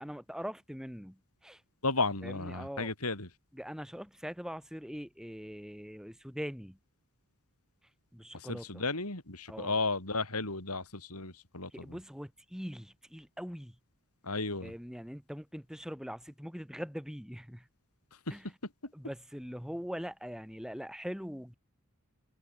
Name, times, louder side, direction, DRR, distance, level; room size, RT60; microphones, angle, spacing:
voice 1, 0.0-1.6 2.2-2.9 3.5-6.8 8.1-8.9 9.5-9.8 11.7-13.8 14.6-17.7 18.3-18.6 18.9-21.5, equal, 5° right, 7.7 m, -42 dB
voice 2, 1.8-3.3 8.5-11.7 14.3-14.7, left 3 dB, 85° left, 6.2 m, -33 dB
head